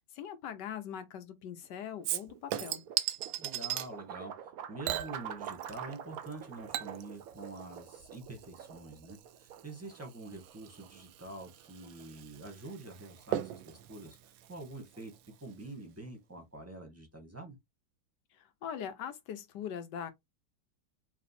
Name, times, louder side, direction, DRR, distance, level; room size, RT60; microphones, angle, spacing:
voice 1, 0.1-2.8 18.6-20.1, left 8 dB, 70° left, 1.3 m, -41 dB
sound 1, 1.6-15.7, right 9 dB, 70° right, 0.9 m, -48 dB
Chink clink / Liquid, 2.0-3.9 4.8-6.0 6.3-15.3 15.6-15.7, right 12 dB, 90° right, 1.4 m, -40 dB
voice 2, 3.4-4.3 4.7-14.2 14.5-15.1 15.4-17.5, right 2 dB, 10° right, 1.0 m, -46 dB
3.5 x 3.0 x 4.2 m
omnidirectional pair, 2.1 m